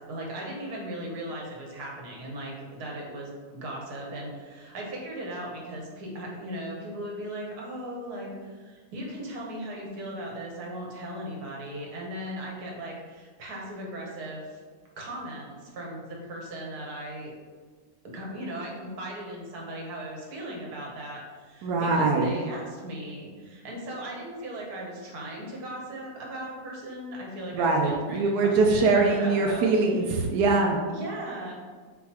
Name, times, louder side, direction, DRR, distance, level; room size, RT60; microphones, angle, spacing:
voice 1, 0.1-14.6 15.0-17.3 18.0-29.7 30.9-31.5, right 1 dB, 55° right, -2 dB, 1.3 m, -38 dB
voice 2, 21.6-22.4 27.5-30.8, right 3 dB, 80° right, 1 dB, 0.8 m, -23 dB
4.2 x 4.2 x 2.8 m, 1.5 s
omnidirectional pair, 2.3 m